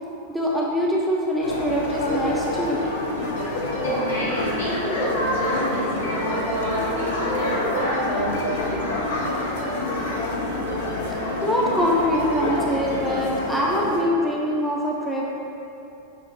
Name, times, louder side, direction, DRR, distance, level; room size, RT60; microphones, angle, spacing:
voice 1, 0.3-2.8 11.4-15.3, equal, ahead, -5 dB, 0.4 m, -23 dB
sound 1, 1.4-14.0, left 2 dB, 55° left, 0.4 m, -27 dB
sound 2, 1.5-13.2, right 1 dB, 65° right, 0.8 m, -35 dB
voice 2, 3.8-9.1, right 1 dB, 75° left, -9 dB, 1.3 m, -28 dB
5.7 x 2.0 x 3.0 m, 2.9 s
figure-of-eight pair, 90°, 0 cm